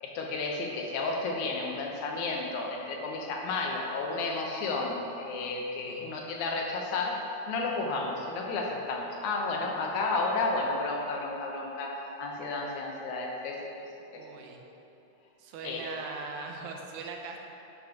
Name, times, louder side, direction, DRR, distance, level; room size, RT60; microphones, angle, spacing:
voice 1, 0.0-13.7 14.1-14.2 15.6-15.9, left 3 dB, 80° left, 0 dB, 2.3 m, -32 dB
voice 2, 14.2-14.6 15.4-17.4, right 3 dB, 85° right, 2 dB, 2.2 m, -40 dB
10.0 x 7.8 x 2.9 m, 2.9 s
omnidirectional pair, 3.4 m